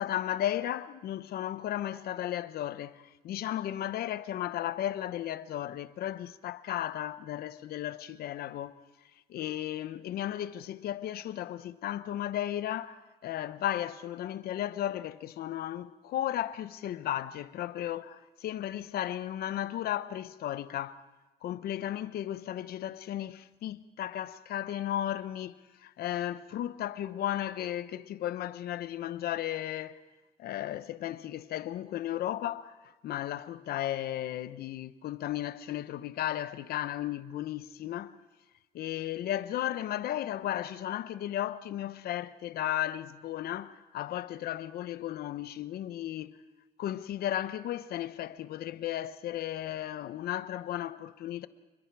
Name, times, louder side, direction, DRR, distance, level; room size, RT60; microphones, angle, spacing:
voice 1, 0.0-8.8 9.3-21.0 21.4-29.9 30.4-38.2 38.7-46.4 46.8-51.5, left 12 dB, 65° left, 1.0 m, -35 dB
29.5 x 22.0 x 4.8 m
cardioid pair, 110°, 17 cm